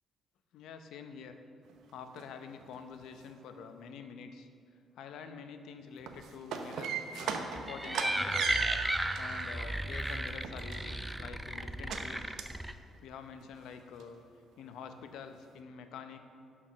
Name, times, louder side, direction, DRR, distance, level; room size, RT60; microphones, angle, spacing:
voice 1, 0.5-1.4 1.9-4.5 5.0-8.6 9.2-12.4 13.0-14.2 14.6-16.2, left 6 dB, 85° left, 7 dB, 0.6 m, -47 dB
sound 1, 1.7-1.8 2.2-2.3 2.6-3.2 5.9-9.5 10.0-11.1 11.9-12.1 12.4-12.6 12.9-13.0 13.4-13.5 13.9-14.0, right 6 dB, 80° right, 0.7 m, -37 dB
sound 2, 7.6-12.7, right 1 dB, 5° right, 0.4 m, -35 dB
11.5 x 4.8 x 5.8 m, 2.3 s
cardioid pair, 90°, 0 cm